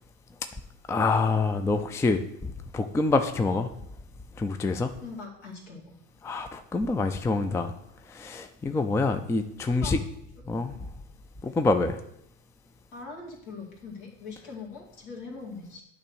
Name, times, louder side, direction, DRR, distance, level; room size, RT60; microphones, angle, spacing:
voice 1, 0.9-2.2 2.7-3.7 4.4-4.9 6.2-7.7 8.1-10.0 10.5-10.8 11.4-12.0, left 3 dB, 10° left, 9 dB, 0.4 m, -26 dB
voice 2, 5.0-6.0 9.7-9.9 11.5-11.6 12.9-15.8, left 4 dB, 70° left, -1 dB, 2.4 m, -41 dB
8.5 x 3.1 x 6.3 m, 0.74 s
hypercardioid pair, 80°, 37 cm